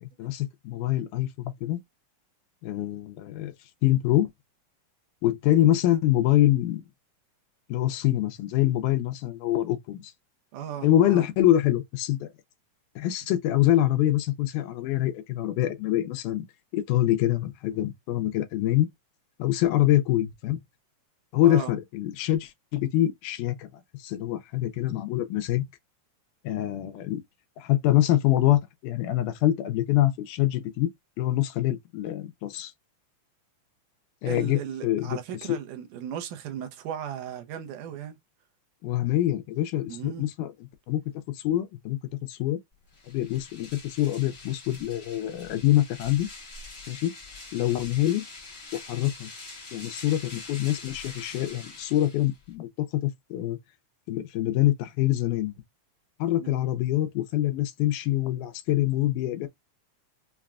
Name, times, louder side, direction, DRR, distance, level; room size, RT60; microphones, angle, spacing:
voice 1, 0.0-1.8 2.6-3.5 3.8-4.3 5.2-6.8 7.7-10.0 10.8-12.3 13.0-16.5 16.7-18.9 19.4-20.6 21.3-23.7 24.0-25.6 26.4-27.2 27.6-30.9 31.2-32.7 34.2-35.2 35.5-35.6 38.8-40.5 40.9-41.0 41.3-42.0 42.3-42.6 43.1-46.3 46.9-47.1 47.5-48.2 48.7-49.3 49.7-53.6 54.1-55.5 56.2-59.5, left 13 dB, 80° left, 2.1 m, -25 dB
voice 2, 10.5-11.3 21.4-21.7 34.3-38.2 39.9-40.3 56.4-56.7, right 9 dB, 80° right, 2.2 m, -37 dB
sound 1, 42.9-52.5, left 3 dB, 40° left, 0.7 m, -44 dB
5.8 x 2.2 x 2.4 m
omnidirectional pair, 3.8 m